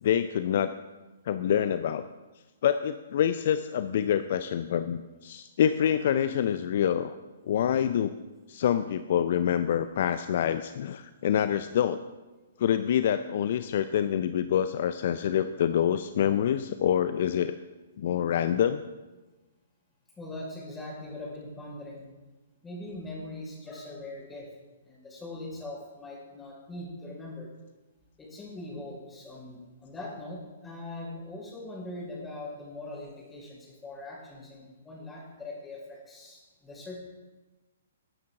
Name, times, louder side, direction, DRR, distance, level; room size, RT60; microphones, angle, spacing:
voice 1, 0.0-0.7 1.2-2.0 2.6-7.1 7.4-8.1 8.5-12.0 12.6-17.5 18.0-18.8, left 9 dB, 50° left, 12 dB, 0.5 m, -26 dB
voice 2, 20.2-22.1 22.6-24.5 24.8-27.5 28.2-37.0, left 2 dB, 10° left, -3 dB, 5.2 m, -41 dB
19.0 x 9.5 x 3.7 m, 1.2 s
figure-of-eight pair, 120°, 0 cm